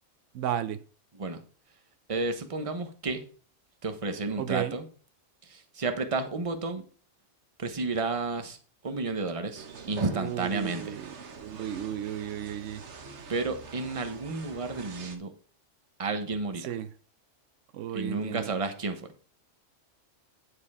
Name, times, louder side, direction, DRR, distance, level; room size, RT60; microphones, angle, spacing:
voice 1, 0.3-0.8 4.4-4.7 10.1-11.1 11.4-12.8 16.6-16.9 17.7-18.5, right 11 dB, 85° right, 0.9 m, -33 dB
voice 2, 2.1-3.2 3.8-4.9 5.4-6.8 7.6-8.6 8.8-11.0 13.3-15.3 16.0-16.7 17.9-19.0, right 3 dB, 30° right, 1.0 m, -31 dB
sound 1, 9.6-15.2, right 4 dB, 70° right, 1.4 m, -45 dB
9.7 x 4.9 x 4.8 m
omnidirectional pair, 1.2 m